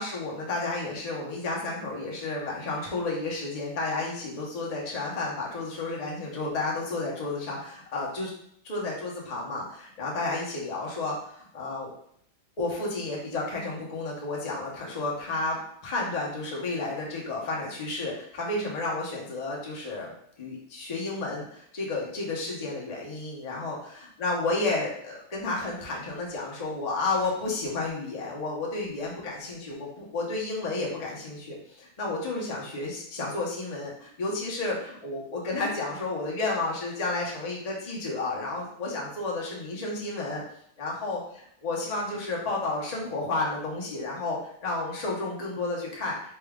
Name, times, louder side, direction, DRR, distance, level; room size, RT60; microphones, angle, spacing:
voice 1, 0.0-8.3 8.7-11.9 12.6-20.1 20.4-40.4 40.8-41.2 41.6-46.3, left 2 dB, 70° left, -3 dB, 0.3 m, -31 dB
4.2 x 2.3 x 3.5 m, 0.67 s
omnidirectional pair, 2.1 m